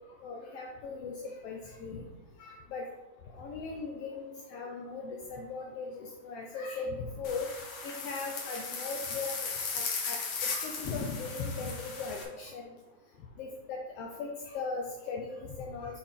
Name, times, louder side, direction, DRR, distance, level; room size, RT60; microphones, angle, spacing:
voice 1, 0.2-2.0 2.4-2.8 3.3-7.5 7.8-12.7 13.4-16.0, left 4 dB, 85° left, 0 dB, 1.3 m, -38 dB
sound 1, 7.2-12.2, left 4 dB, 65° left, 2.1 m, -37 dB
6.9 x 4.3 x 3.7 m, 1.1 s
omnidirectional pair, 3.4 m